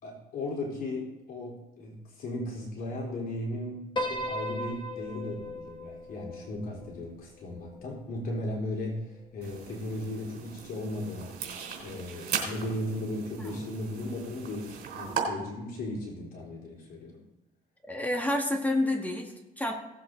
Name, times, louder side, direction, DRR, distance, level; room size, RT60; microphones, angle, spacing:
voice 1, 0.0-11.5 11.8-17.2, left 1 dB, 60° left, -2 dB, 3.8 m, -36 dB
Piano, 4.0-8.4, left 1 dB, 25° left, 1.8 m, -37 dB
sound 1, 9.4-15.2, right 7 dB, 65° right, 3.6 m, -38 dB
voice 2, 17.9-19.7, left 1 dB, 10° left, 2 dB, 1.9 m, -29 dB
17.0 x 7.8 x 4.0 m, 1.0 s
cardioid pair, 110°, 17 cm